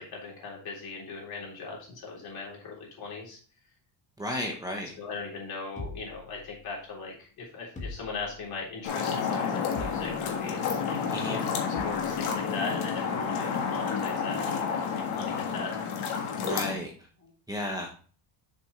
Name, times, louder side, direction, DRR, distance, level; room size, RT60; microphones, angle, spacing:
voice 1, 0.0-3.4 4.4-11.0 11.2-15.7 17.2-17.3, left 4 dB, 50° left, -2 dB, 3.6 m, -39 dB
voice 2, 4.2-4.9 11.1-11.4 16.4-16.9 17.5-17.9, left 1 dB, 10° right, 0 dB, 1.0 m, -33 dB
sound 1, 5.8-6.9 7.8-8.6 9.8-10.4 11.8-12.2, left 2 dB, 15° left, 1.6 m, -42 dB
sound 2, 8.8-16.7, left 6 dB, 85° left, 1.7 m, -30 dB
6.9 x 6.0 x 3.2 m, 0.41 s
cardioid pair, 150°, 48 cm